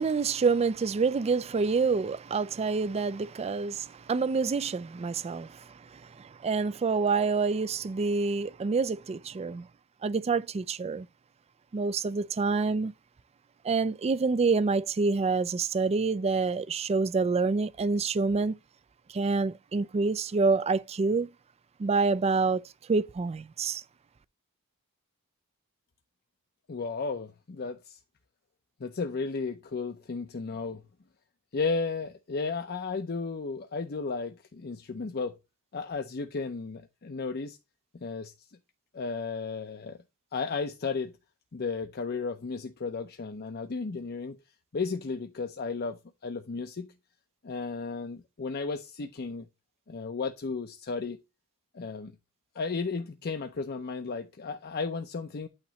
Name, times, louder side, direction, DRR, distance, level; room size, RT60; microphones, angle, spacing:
voice 1, 0.0-9.7 10.0-11.1 11.7-12.9 13.6-18.5 19.1-21.3 21.8-23.8, right 4 dB, 30° right, 0.3 m, -27 dB
voice 2, 26.7-28.0 28.8-30.8 31.5-35.4 35.7-37.6 37.9-38.3 38.9-40.0 40.3-41.1 41.5-44.4 44.7-46.9 47.4-49.5 49.9-51.2 51.7-52.2 52.5-55.5, left 4 dB, 45° left, 0.6 m, -34 dB
8.8 x 3.1 x 5.6 m
head